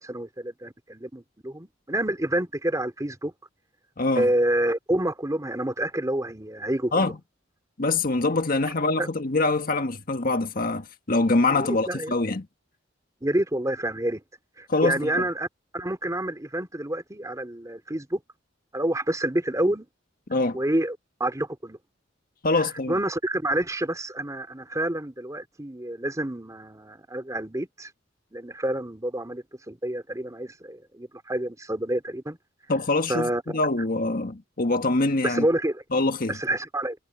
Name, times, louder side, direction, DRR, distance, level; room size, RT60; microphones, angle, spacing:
voice 1, 0.0-3.3 4.1-7.1 9.0-9.1 11.5-12.1 13.2-14.2 14.6-15.5 15.7-18.2 18.7-19.8 20.5-21.8 22.9-27.9 28.3-32.4 33.1-33.6 35.2-35.8 36.3-37.0, right 1 dB, 15° right, 3.2 m, -28 dB
voice 2, 7.8-12.5 14.7-15.2 20.3-20.6 22.4-22.9 32.7-35.4 35.9-36.4, left 2 dB, 50° left, 1.6 m, -24 dB
head